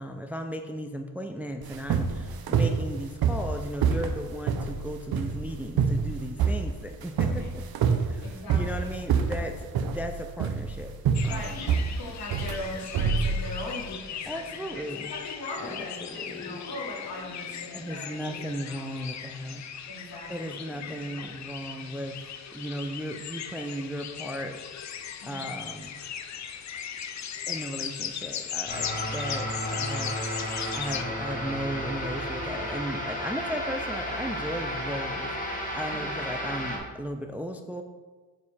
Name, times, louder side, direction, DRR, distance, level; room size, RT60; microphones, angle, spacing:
voice 1, 0.0-7.6 8.0-10.9 11.2-11.7 14.3-15.1 15.6-16.6 17.7-19.7 20.3-22.2 22.5-24.6 25.2-26.0 27.5-30.2 30.7-37.8, equal, 5° right, 5 dB, 0.3 m, -36 dB
sound 1, 1.6-13.8, right 6 dB, 85° right, 0.7 m, -27 dB
voice 2, 8.2-8.9 11.2-14.5 14.7-14.8 15.1-18.4 18.7-18.8 19.9-21.1 25.2-25.5 35.9-36.0, left 1 dB, 75° left, -2 dB, 2.0 m, -40 dB
sound 2, 11.1-31.0, left 8 dB, 50° left, 0.5 m, -38 dB
sound 3, 28.7-36.8, equal, 25° left, 1.4 m, -32 dB
7.1 x 4.8 x 4.2 m, 1.3 s
wide cardioid pair, 120°, 36 cm